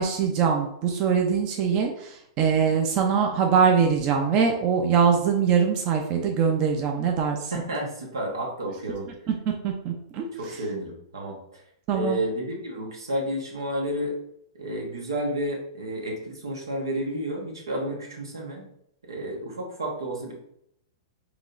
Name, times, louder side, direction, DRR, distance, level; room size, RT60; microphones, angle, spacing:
voice 1, 0.0-7.5 9.5-10.2 11.9-12.2, right 6 dB, 40° right, 2 dB, 0.6 m, -23 dB
voice 2, 7.5-9.1 10.3-11.6 11.9-14.2 14.6-18.6 19.1-20.3, right 1 dB, 90° right, 0 dB, 1.2 m, -31 dB
4.8 x 3.0 x 2.6 m, 0.75 s
hypercardioid pair, 115°, 2 cm